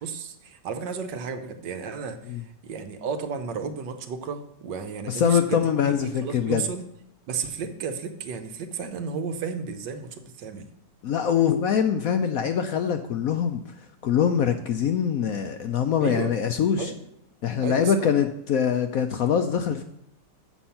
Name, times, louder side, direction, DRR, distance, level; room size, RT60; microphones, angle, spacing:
voice 1, 0.0-6.9 7.3-10.7 16.0-16.3 16.8-17.0 17.6-18.1, right 6 dB, 75° right, 8 dB, 1.5 m, -33 dB
voice 2, 5.1-6.6 11.0-13.6 14.0-16.9 17.4-19.8, left 8 dB, 70° left, 7 dB, 0.9 m, -23 dB
7.3 x 7.1 x 5.7 m, 0.76 s
omnidirectional pair, 2.0 m